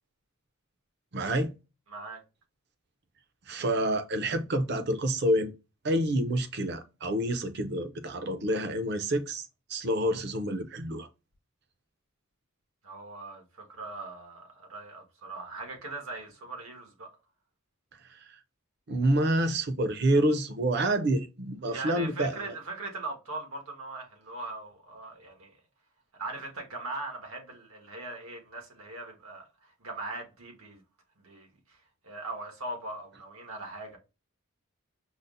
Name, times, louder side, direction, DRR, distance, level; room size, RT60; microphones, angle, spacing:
voice 1, 1.1-1.5 3.5-5.5 5.8-11.1 18.9-22.5, right 1 dB, 50° right, 0.5 m, -28 dB
voice 2, 1.9-2.2 12.8-17.1 21.6-25.5 26.1-30.8 31.2-31.8 32.0-34.0, right 2 dB, 85° right, 1.3 m, -40 dB
5.4 x 2.0 x 2.6 m
head